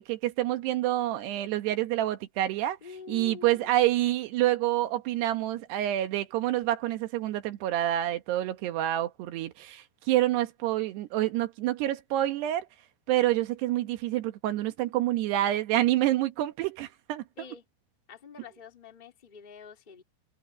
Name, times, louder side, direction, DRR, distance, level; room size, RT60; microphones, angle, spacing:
voice 1, 0.0-2.8 3.1-12.7 13.1-17.2, right 14 dB, 75° right, 3.3 m, -27 dB
voice 2, 2.8-3.5 17.4-17.6 18.1-20.0, left 5 dB, 15° left, 1.7 m, -46 dB
omnidirectional pair, 4.9 m